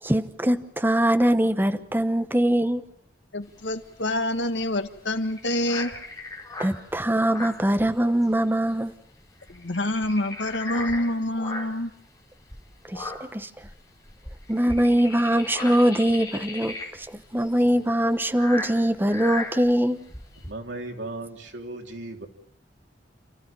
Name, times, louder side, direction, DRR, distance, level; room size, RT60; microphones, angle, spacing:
voice 1, 0.0-2.8 6.6-8.9 12.9-13.7 14.5-20.0, right 1 dB, 10° right, 1.0 m, -22 dB
voice 2, 3.3-5.9 9.5-11.9, left 1 dB, 85° left, 1.6 m, -27 dB
sound 1, 3.4-8.4 8.7-8.9 9.2-11.9 12.4-20.5, left 2 dB, 20° left, 4.2 m, -37 dB
voice 3, 20.5-22.3, right 2 dB, 85° right, 3.4 m, -36 dB
29.0 x 14.5 x 8.9 m
head